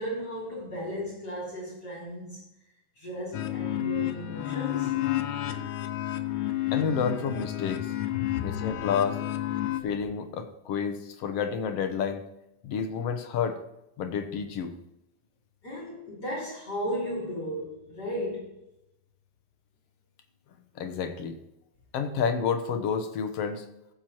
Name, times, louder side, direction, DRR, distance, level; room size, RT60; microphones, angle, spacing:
voice 1, 0.0-2.5 3.0-4.9 8.3-8.5 15.6-18.6, equal, 35° left, -5 dB, 3.5 m, -35 dB
sound 1, 3.3-9.8, left 14 dB, 90° left, 2.1 m, -31 dB
voice 2, 6.7-7.9 8.4-9.2 9.8-12.3 12.6-13.6 14.0-14.7 20.8-21.4 21.9-23.6, left 6 dB, 70° left, 7 dB, 1.6 m, -29 dB
15.0 x 7.7 x 2.9 m, 0.86 s
omnidirectional pair, 3.4 m